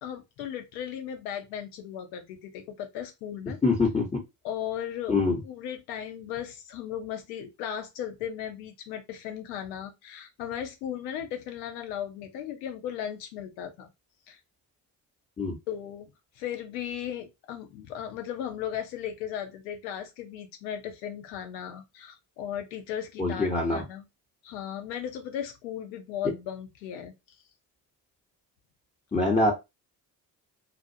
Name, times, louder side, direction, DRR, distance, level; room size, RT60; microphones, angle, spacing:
voice 1, 0.0-3.6 4.4-5.1 5.4-13.9 14.3-14.4 15.7-24.0 24.4-27.4, left 9 dB, 85° left, 0.7 m, -36 dB
voice 2, 3.6-4.1 5.1-5.4 15.4-15.6 23.2-23.8 29.1-29.5, left 3 dB, 15° left, 0.9 m, -24 dB
2.5 x 2.0 x 2.6 m
hypercardioid pair, 50°, 49 cm